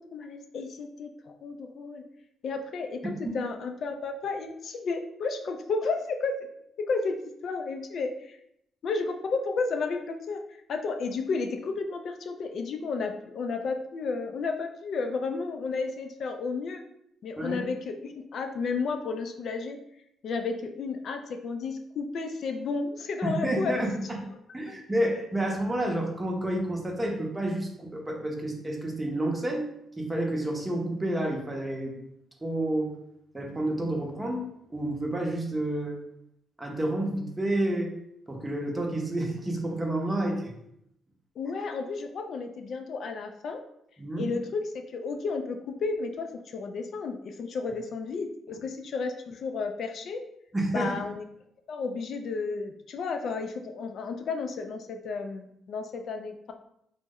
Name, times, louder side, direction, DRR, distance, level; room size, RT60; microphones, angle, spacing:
voice 1, 0.1-2.0 2.4-6.4 6.8-7.2 7.4-8.4 8.8-16.8 17.2-19.8 20.2-23.7 41.4-43.6 44.2-50.2 50.7-51.2 51.7-56.5, left 4 dB, 60° left, 5 dB, 0.3 m, -32 dB
voice 2, 23.2-23.9 24.5-29.7 30.0-31.9 32.4-32.9 33.3-36.0 36.6-37.9 38.3-40.5 44.0-44.3 50.5-50.9, right 1 dB, 15° right, 1 dB, 0.7 m, -29 dB
3.0 x 2.0 x 3.5 m, 0.76 s
cardioid pair, 90°, 0 cm